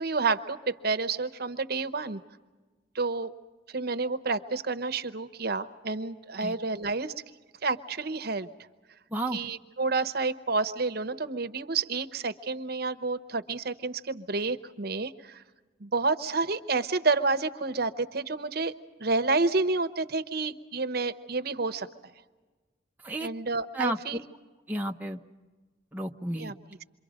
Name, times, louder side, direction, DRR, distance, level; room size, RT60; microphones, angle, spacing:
voice 1, 0.0-2.2 2.9-3.3 3.7-7.1 7.6-8.5 9.3-15.4 15.8-18.7 19.0-21.9 23.2-24.2 26.4-26.5, right 3 dB, 55° right, 10 dB, 0.9 m, -29 dB
voice 2, 24.7-25.2 25.9-26.5, right 1 dB, 10° right, 1 dB, 0.7 m, -32 dB
27.5 x 24.5 x 5.1 m, 1.3 s
head